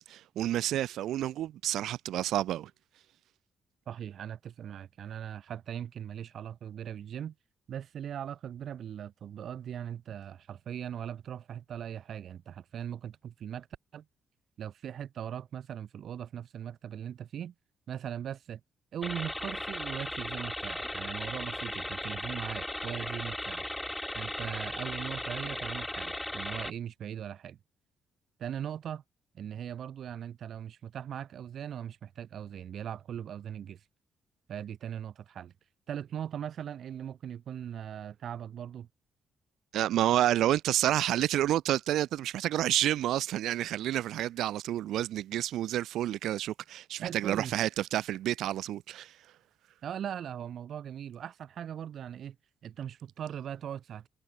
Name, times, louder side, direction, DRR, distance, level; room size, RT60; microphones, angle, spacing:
voice 1, 0.1-2.7 39.7-49.1, right 13 dB, 85° right, 0.8 m, -29 dB
voice 2, 3.9-7.3 7.7-13.7 13.9-14.0 14.6-17.5 17.9-18.6 18.9-23.7 24.1-27.6 28.4-29.0 29.3-33.8 34.5-35.5 35.9-38.9 47.0-47.5 49.8-52.4 52.6-54.1, right 9 dB, 55° right, 6.7 m, -39 dB
sound 1, 19.0-26.7, left 1 dB, 5° left, 0.4 m, -37 dB
cardioid pair, 150°, 0 cm